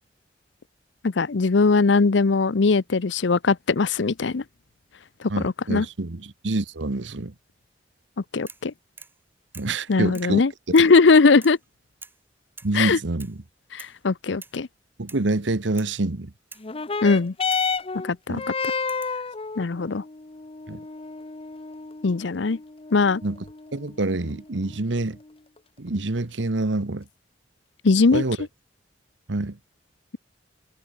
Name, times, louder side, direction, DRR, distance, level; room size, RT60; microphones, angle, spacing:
voice 1, 1.0-4.4 5.2-5.9 8.3-8.7 9.9-11.6 12.7-13.0 13.7-14.7 17.0-17.3 18.0-18.4 19.6-20.0 22.0-22.6 22.9-23.2 27.8-28.2, left 4 dB, 75° left, 0.7 m, -20 dB
voice 2, 5.3-7.3 9.5-10.4 12.6-13.4 15.0-16.3 18.3-18.4 20.7-20.8 23.2-23.4 23.7-25.2 25.8-27.1 28.1-28.4 29.3-29.6, right 2 dB, 80° right, 1.2 m, -26 dB
sound 1, 8.5-8.7 9.0-9.2 9.5-9.8 10.1-10.4 10.8-11.0 11.4-11.7 12.0-12.2 12.6-12.8 13.2-13.4 13.8-14.0 14.4-14.6 15.1-15.3 15.7-16.0 16.5-16.7 17.5-17.7 18.9-19.2 20.4-20.9, right 4 dB, 10° right, 5.6 m, -46 dB
sound 2, 16.6-25.6 26.4-26.5, left 5 dB, 30° left, 0.8 m, -32 dB
head